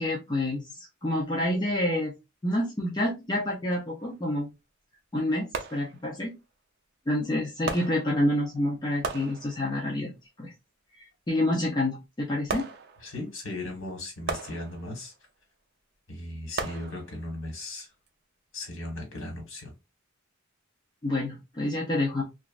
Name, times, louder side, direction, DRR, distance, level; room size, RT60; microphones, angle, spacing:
voice 1, 0.0-2.1 2.4-4.5 5.1-6.3 7.1-10.1 10.4-10.5 11.3-12.7 21.0-22.2, left 1 dB, 20° left, -2 dB, 0.6 m, -28 dB
sound 1, 4.0-4.2 5.5-6.3 7.7-8.6 9.0-10.0 12.5-13.4 14.3-15.2 16.6-17.5 18.1-18.2, right 4 dB, 55° right, 0.5 m, -37 dB
voice 2, 13.0-15.1 16.1-17.9 18.5-19.7, left 1 dB, 65° left, 3 dB, 1.3 m, -37 dB
3.0 x 2.4 x 2.3 m, 0.25 s
head